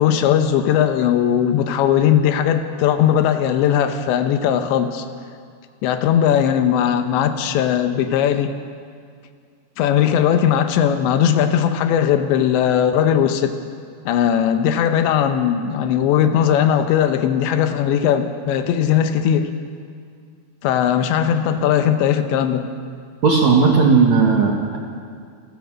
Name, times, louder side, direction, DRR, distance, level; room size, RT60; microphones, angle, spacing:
voice 1, 0.0-5.0 5.8-8.6 9.8-13.6 14.1-19.5 20.6-22.7, left 9 dB, 80° left, 8 dB, 3.2 m, -18 dB
voice 2, 23.2-24.8, right 5 dB, 55° right, 0 dB, 2.3 m, -15 dB
28.0 x 16.0 x 6.3 m, 2.2 s
omnidirectional pair, 5.3 m